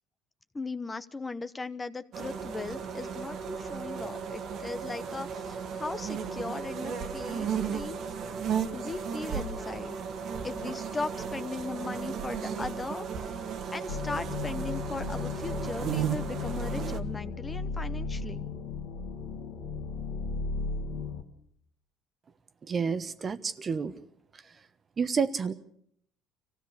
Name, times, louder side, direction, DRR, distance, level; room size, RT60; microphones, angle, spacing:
voice 1, 0.5-8.0 8.7-10.0 10.4-13.1 13.7-18.5, left 3 dB, 20° left, 12 dB, 0.8 m, -38 dB
sound 1, 2.1-17.0, right 7 dB, 55° right, 1.5 m, -35 dB
sound 2, 13.9-21.2, left 4 dB, 80° left, 2.0 m, -35 dB
voice 2, 22.7-23.9 25.0-25.5, right 5 dB, 35° right, 13 dB, 1.0 m, -29 dB
25.0 x 16.0 x 6.7 m, 0.68 s
supercardioid pair, 100°, 0 cm